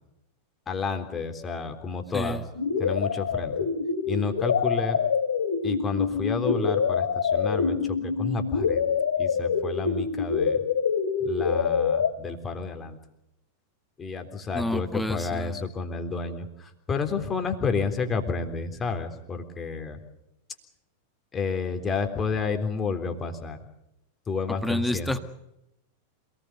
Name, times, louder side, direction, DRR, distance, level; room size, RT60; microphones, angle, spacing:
voice 1, 0.7-2.4 2.8-3.5 4.1-5.0 5.6-8.8 9.2-10.6 11.2-13.0 14.0-20.0 21.3-23.6 24.3-25.2, left 4 dB, 20° left, 6 dB, 3.7 m, -30 dB
sound 1, 2.5-12.1, left 6 dB, 65° left, 2.5 m, -26 dB
voice 2, 14.5-15.6 24.6-25.2, left 1 dB, 5° left, 11 dB, 1.6 m, -29 dB
27.5 x 19.5 x 6.9 m, 0.87 s
figure-of-eight pair, 90°, 0 cm